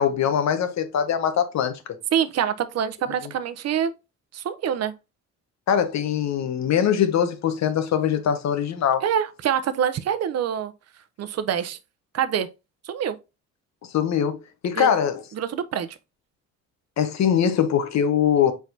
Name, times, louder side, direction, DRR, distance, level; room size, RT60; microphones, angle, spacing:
voice 1, 0.0-1.8 5.7-9.0 13.9-15.2 17.0-18.5, left 8 dB, 65° left, 1.0 m, -22 dB
voice 2, 2.1-3.9 4.3-4.9 9.0-10.7 11.2-11.8 12.1-12.5 12.8-13.1 14.8-14.9 15.3-15.9, right 8 dB, 55° right, 0.7 m, -25 dB
4.7 x 4.3 x 2.7 m
cardioid pair, 90°, 30 cm